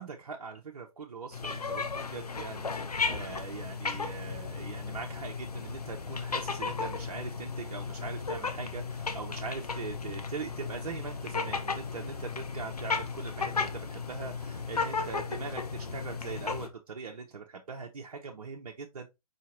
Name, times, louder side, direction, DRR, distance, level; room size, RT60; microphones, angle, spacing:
voice 1, 0.0-2.7 3.1-19.1, right 5 dB, 65° right, 0.7 m, -41 dB
sound 1, 1.3-16.7, left 4 dB, 75° left, 0.7 m, -35 dB
4.8 x 2.9 x 2.8 m
figure-of-eight pair, 120°, 20 cm